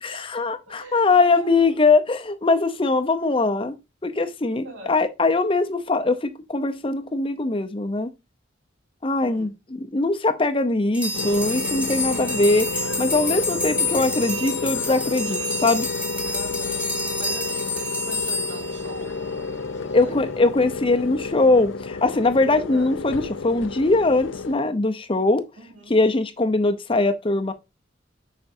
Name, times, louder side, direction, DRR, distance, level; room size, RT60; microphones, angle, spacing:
voice 1, 0.0-3.7 4.0-8.1 9.0-12.7 13.0-15.9 19.9-25.4 25.9-27.5, left 3 dB, 30° left, 0.7 m, -21 dB
voice 2, 0.7-1.7 4.6-5.0 9.2-9.5 12.1-12.5 16.3-20.2 22.7-22.9 25.6-26.0, right 1 dB, 90° right, 2.7 m, -42 dB
sound 1, 10.9-19.5, left 2 dB, 5° right, 2.0 m, -29 dB
sound 2, 11.1-24.5, left 4 dB, 85° left, 0.6 m, -31 dB
7.7 x 5.8 x 2.7 m
head